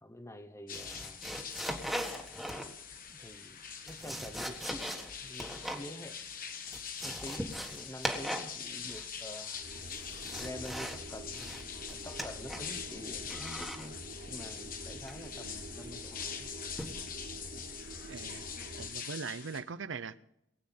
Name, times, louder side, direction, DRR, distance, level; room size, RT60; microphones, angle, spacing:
voice 1, 0.0-1.2 3.1-3.6 3.9-4.9 5.2-6.2 7.0-9.6 10.4-11.5 11.9-14.0 14.3-16.5, left 1 dB, 15° left, 11 dB, 1.0 m, -47 dB
sound 1, 0.7-19.6, left 7 dB, 50° left, 1.5 m, -44 dB
sound 2, 0.7-2.9 3.7-5.9 6.2-6.3 6.6-8.6 8.8-9.3 9.8-11.0 11.3-12.8 13.3-13.9 15.1-15.4 16.8-17.1 17.6-17.8, equal, ahead, 1.6 m, -40 dB
sound 3, 9.5-18.9, right 1 dB, 55° right, 2.7 m, -47 dB
voice 2, 17.8-18.5 18.7-20.2, right 5 dB, 85° right, 15 dB, 0.7 m, -41 dB
20.5 x 8.7 x 5.7 m, 0.80 s
head